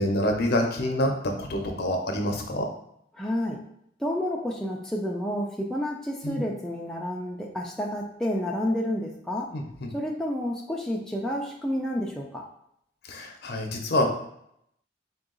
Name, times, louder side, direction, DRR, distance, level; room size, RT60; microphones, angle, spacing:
voice 1, 0.0-2.7 6.2-6.4 9.5-9.9 13.1-14.1, left 1 dB, 60° left, 3 dB, 0.6 m, -27 dB
voice 2, 3.1-3.6 4.0-9.5 9.9-12.4, equal, 5° left, -2 dB, 0.4 m, -30 dB
3.8 x 2.3 x 3.7 m, 0.74 s
head